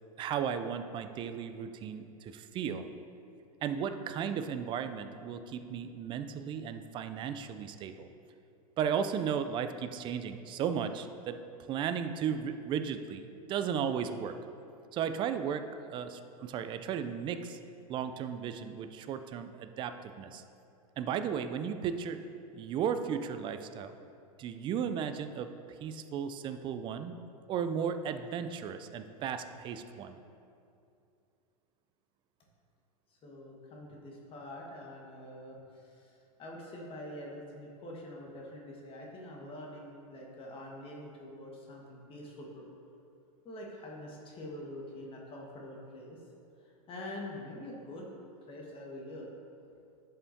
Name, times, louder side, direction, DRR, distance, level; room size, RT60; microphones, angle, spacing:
voice 1, 0.2-2.8 3.6-8.1 8.8-11.4 11.7-14.3 14.9-17.6 17.9-20.4 21.0-22.2 22.5-23.9 24.4-25.5 25.8-27.1 27.5-30.2, right 7 dB, 25° right, 9 dB, 0.4 m, -35 dB
voice 2, 33.1-42.7 43.4-46.2 46.6-48.1 48.5-49.3, left 1 dB, 25° left, -2 dB, 1.4 m, -45 dB
11.0 x 5.7 x 2.7 m, 2.6 s
hypercardioid pair, 115°, 20 cm